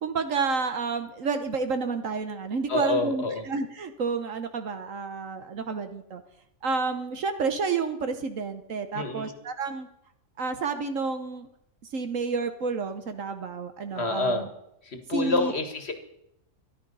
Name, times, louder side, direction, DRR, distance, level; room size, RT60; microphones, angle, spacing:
voice 1, 0.0-6.2 6.6-9.9 10.4-11.5 11.9-14.5 15.1-15.5, right 4 dB, 65° right, 8 dB, 1.4 m, -30 dB
voice 2, 2.7-3.5 8.9-9.3 13.9-14.5 14.8-15.9, left 2 dB, 45° left, 8 dB, 1.9 m, -27 dB
13.5 x 11.5 x 5.5 m, 0.80 s
omnidirectional pair, 1.5 m